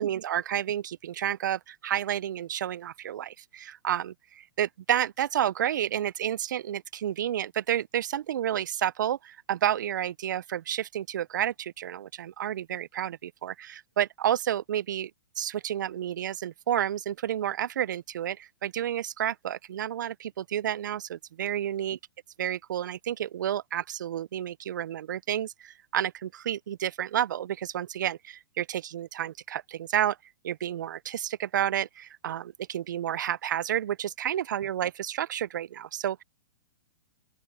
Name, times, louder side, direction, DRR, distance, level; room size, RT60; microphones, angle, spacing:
voice 1, 0.0-15.1 15.4-22.0 22.4-30.2 30.4-36.2, right 10 dB, 80° right, 0.4 m, -30 dB
open air
hypercardioid pair, 160°, 10 cm